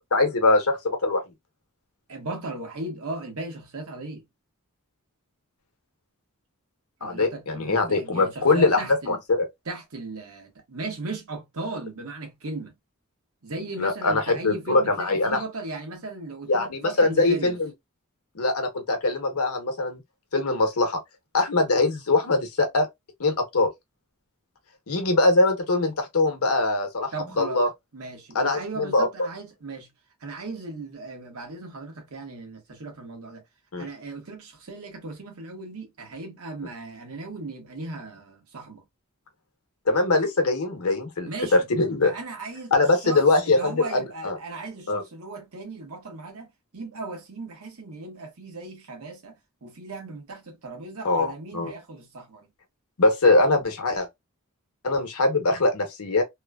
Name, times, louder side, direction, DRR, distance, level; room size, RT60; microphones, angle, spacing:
voice 1, 0.1-1.2 7.0-8.8 9.1-9.5 13.8-15.4 16.5-17.7 18.3-20.0 20.3-21.0 21.3-22.9 23.2-23.7 24.9-27.1 27.4-27.7 28.3-29.1 33.7-33.9 39.9-42.1 42.7-44.3 44.9-45.0 51.0-51.7 53.0-54.1 54.8-56.2, left 2 dB, 75° left, 0.9 m, -22 dB
voice 2, 2.1-4.2 7.0-9.2 9.7-12.8 13.4-17.6 27.1-27.6 27.9-29.9 30.2-33.4 33.8-38.8 41.3-41.7 42.0-42.7 43.0-52.5, right 3 dB, 70° right, 1.1 m, -37 dB
3.0 x 2.2 x 2.2 m
head